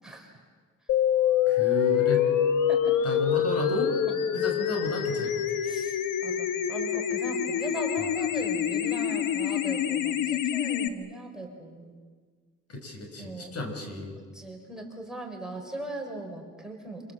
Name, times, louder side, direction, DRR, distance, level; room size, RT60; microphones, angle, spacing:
voice 1, 0.0-0.4 2.7-2.9 4.1-4.2 5.6-6.0 6.2-12.0 13.2-13.5 14.3-17.0, right 1 dB, ahead, 0 dB, 4.7 m, -39 dB
sound 1, 0.9-10.9, left 9 dB, 90° left, 1.5 m, -26 dB
voice 2, 1.5-2.3 3.0-4.0 4.3-5.4 12.7-14.2, left 2 dB, 50° left, 3 dB, 6.2 m, -32 dB
28.0 x 26.0 x 7.7 m, 1.5 s
cardioid pair, 115°, 31 cm